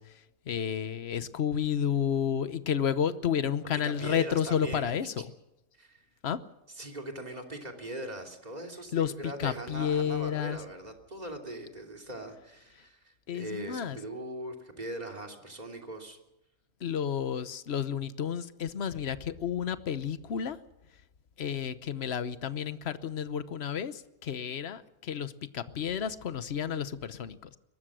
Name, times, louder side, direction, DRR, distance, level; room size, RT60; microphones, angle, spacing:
voice 1, 0.0-5.3 6.2-6.4 8.9-10.6 13.3-14.0 16.8-20.6 21.4-27.6, left 8 dB, 50° left, 13 dB, 1.1 m, -31 dB
voice 2, 3.8-5.0 5.8-6.0 6.8-16.2, right 1 dB, 30° right, 2 dB, 3.1 m, -40 dB
22.5 x 20.0 x 6.3 m, 0.91 s
omnidirectional pair, 1.5 m